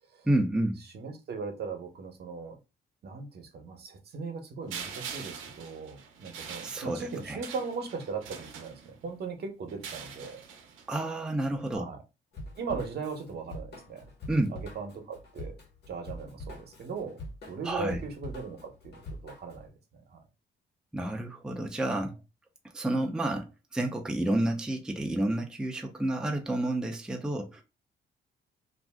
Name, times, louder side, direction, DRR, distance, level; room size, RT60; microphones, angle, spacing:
voice 1, 0.3-0.8 6.6-7.4 10.9-11.9 14.3-14.5 17.6-18.0 20.9-22.2 22.7-23.5 23.7-27.6, right 1 dB, 5° right, 0.5 m, -30 dB
voice 2, 0.9-2.6 3.0-10.4 11.7-12.0 12.6-14.1 14.5-15.5 15.9-17.2 17.5-18.9 19.2-20.2, right 5 dB, 55° right, 0.8 m, -38 dB
sound 1, 4.7-9.2 9.7-11.0, right 7 dB, 85° right, 0.6 m, -43 dB
Drum kit / Drum, 12.3-19.6, left 1 dB, 55° left, 1.3 m, -44 dB
2.5 x 2.0 x 3.4 m
cardioid pair, 90°, 20 cm